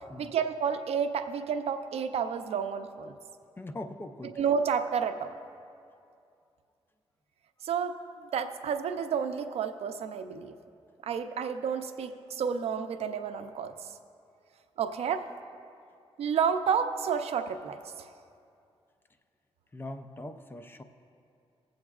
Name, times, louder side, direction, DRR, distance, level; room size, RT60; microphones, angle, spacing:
voice 1, 0.2-3.1 4.4-5.3 7.6-10.6 11.0-13.7 14.8-15.3 16.2-17.8, right 7 dB, 75° right, 8 dB, 0.5 m, -30 dB
voice 2, 3.6-4.4 19.7-20.8, left 1 dB, 20° left, 8 dB, 0.4 m, -41 dB
18.0 x 7.8 x 2.4 m, 2.5 s
wide cardioid pair, 135°, 11 cm